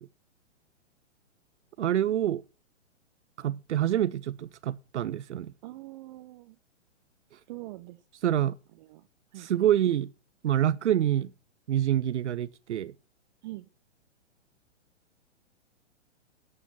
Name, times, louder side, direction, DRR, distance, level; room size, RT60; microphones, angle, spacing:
voice 1, 1.8-2.4 3.4-5.5 8.2-8.6 9.4-10.1 10.4-11.3 11.7-12.9, right 11 dB, 70° right, 0.7 m, -26 dB
voice 2, 5.6-6.6 7.5-8.0 8.8-9.1 9.3-9.5 13.4-13.7, right 18 dB, 40° right, 0.8 m, -43 dB
11.5 x 6.9 x 7.2 m
hypercardioid pair, 120°, 36 cm